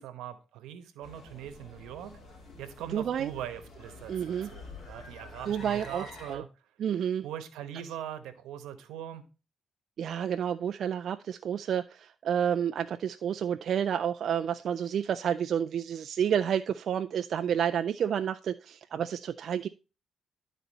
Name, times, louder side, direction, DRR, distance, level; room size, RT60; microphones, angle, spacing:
voice 1, 0.0-2.2 2.6-6.5 7.2-9.2, right 10 dB, 90° right, 10 dB, 1.0 m, -41 dB
sound 1, 1.0-6.4, left 3 dB, 50° left, 2.4 m, -48 dB
voice 2, 2.9-3.3 4.1-4.5 5.5-6.4 6.8-7.2 10.0-19.7, right 8 dB, 60° right, 9 dB, 0.3 m, -30 dB
12.0 x 4.0 x 4.0 m, 0.33 s
cardioid pair, 90°, 0 cm